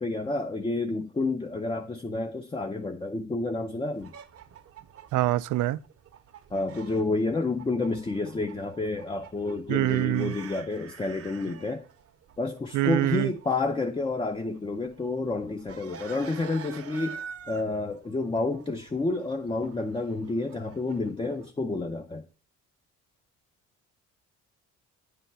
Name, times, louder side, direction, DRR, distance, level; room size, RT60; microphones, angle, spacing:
voice 1, 0.0-4.1 6.5-11.8 12.4-17.2 17.5-22.2, left 3 dB, 15° left, 0.5 m, -30 dB
sound 1, 3.9-21.5, right 7 dB, 50° right, 0.8 m, -48 dB
voice 2, 5.1-5.8 9.7-10.4 12.7-13.3, right 15 dB, 80° right, 0.4 m, -25 dB
8.9 x 3.4 x 5.4 m
cardioid pair, 90°, 30 cm